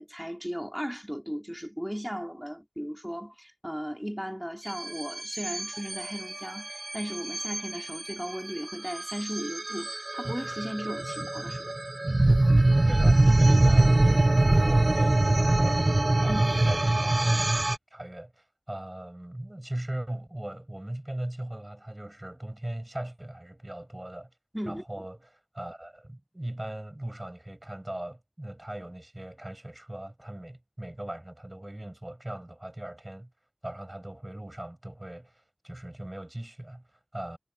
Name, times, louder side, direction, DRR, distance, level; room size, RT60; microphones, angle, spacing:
voice 1, 0.0-11.8 16.3-16.6 24.5-24.8, equal, 5° right, 3.4 m, -36 dB
sound 1, 4.7-17.8, right 2 dB, 65° right, 0.7 m, -24 dB
voice 2, 12.8-15.9 16.2-17.6 17.9-24.3 24.7-33.3 33.6-37.4, right 1 dB, 35° right, 6.2 m, -39 dB
wide cardioid pair, 40°, 0 cm